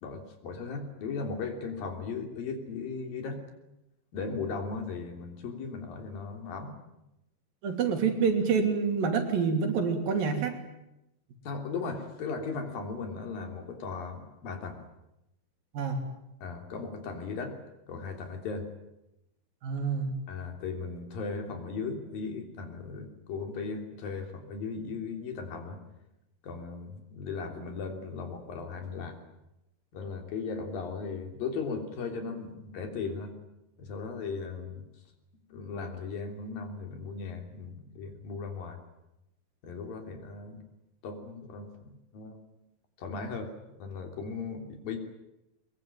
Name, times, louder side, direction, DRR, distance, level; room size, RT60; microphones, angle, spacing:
voice 1, 0.0-3.4 4.1-6.7 11.4-14.8 16.4-17.6 17.9-18.7 20.3-25.8 26.4-29.2 29.9-33.4 33.8-34.8 35.5-38.8 39.6-40.6 41.0-42.4 43.0-43.5 43.8-45.0, left 4 dB, 85° left, 5 dB, 5.0 m, -37 dB
voice 2, 7.6-10.6 15.7-16.0 19.6-20.2, right 5 dB, 85° right, 5 dB, 4.7 m, -27 dB
23.0 x 22.0 x 9.0 m, 0.89 s
omnidirectional pair, 4.0 m